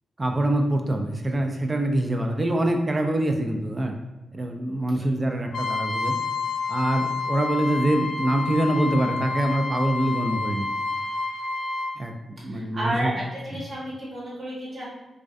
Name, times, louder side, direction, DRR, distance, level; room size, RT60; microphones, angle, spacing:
voice 1, 0.2-4.0 4.3-6.1 6.7-10.7 12.0-12.1 12.4-13.1 13.5-13.6, right 1 dB, 35° right, 4 dB, 0.4 m, -25 dB
Trumpet, 5.5-11.9, left 4 dB, 80° left, 0.4 m, -29 dB
voice 2, 12.5-14.8, right 1 dB, 50° right, -6 dB, 1.1 m, -31 dB
2.3 x 2.2 x 2.5 m, 1.0 s
cardioid pair, 50°, 0 cm